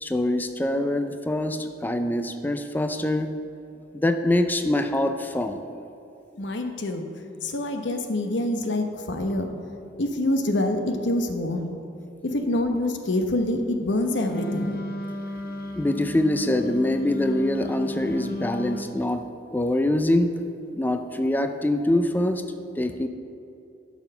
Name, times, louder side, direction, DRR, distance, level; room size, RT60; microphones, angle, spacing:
voice 1, 0.0-3.3 3.9-5.6 15.4-20.4 20.7-22.4 22.8-23.1, left 1 dB, 10° left, 7 dB, 0.4 m, -24 dB
voice 2, 6.4-7.1 7.4-9.5 10.0-11.7 12.2-14.8, left 1 dB, 85° left, 6 dB, 0.9 m, -26 dB
Wind instrument woodwind instrument, 14.2-18.9, left 1 dB, 55° left, 0.7 m, -34 dB
10.5 x 6.2 x 5.6 m, 2.7 s
head